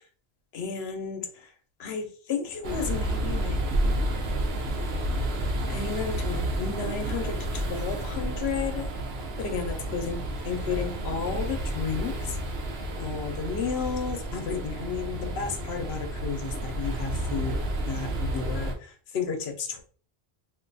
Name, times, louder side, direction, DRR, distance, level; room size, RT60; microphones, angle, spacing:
voice 1, 0.5-1.3 1.8-3.6 5.7-8.9 9.4-10.2 10.5-12.1 13.0-17.6 17.9-19.8, left 5 dB, 75° left, 5 dB, 0.9 m, -32 dB
sound 1, 2.6-18.7, right 1 dB, 70° right, 0.9 m, -30 dB
2.6 x 2.2 x 3.8 m, 0.41 s
omnidirectional pair, 1.1 m